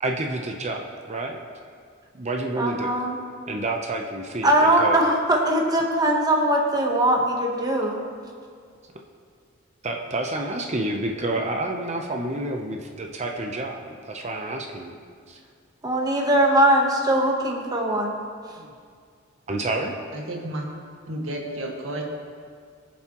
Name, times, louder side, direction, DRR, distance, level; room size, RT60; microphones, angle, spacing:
voice 1, 0.0-1.4 2.1-2.9 3.5-5.0 9.8-14.9 15.3-15.4 18.6-18.7 19.5-19.9, right 2 dB, 35° right, 2 dB, 0.8 m, -29 dB
voice 2, 2.6-3.2 4.4-8.0 15.8-18.2, right 1 dB, 20° right, 0 dB, 1.1 m, -21 dB
voice 3, 20.1-20.7 21.1-22.0, right 1 dB, 75° right, -1 dB, 1.8 m, -31 dB
21.0 x 7.2 x 3.0 m, 2.1 s
head